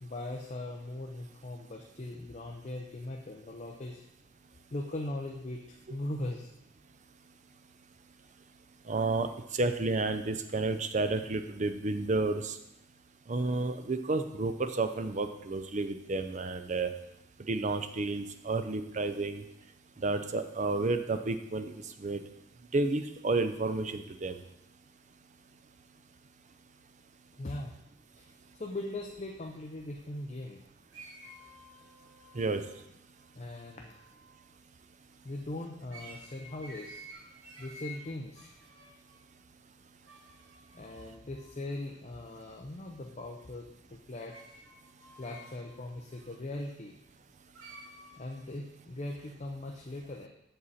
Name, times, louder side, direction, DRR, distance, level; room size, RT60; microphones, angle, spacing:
voice 1, 0.0-4.0 4.7-6.5 27.4-27.7 28.2-30.6 33.3-33.9 35.2-37.0 37.6-38.5 40.7-44.4 45.2-47.0 48.2-50.3, left 1 dB, 35° left, 1 dB, 0.6 m, -40 dB
voice 2, 8.9-9.3 9.5-12.5 13.3-16.9 17.5-19.4 20.0-21.7 22.0-22.2 22.7-24.4 32.3-32.6, right 3 dB, 35° right, 9 dB, 0.5 m, -31 dB
sound 1, 30.9-34.5 35.9-39.2 40.0-41.5 44.3-46.4 47.5-48.4, equal, 70° right, 1.9 m, -52 dB
7.7 x 7.1 x 4.1 m, 0.86 s
head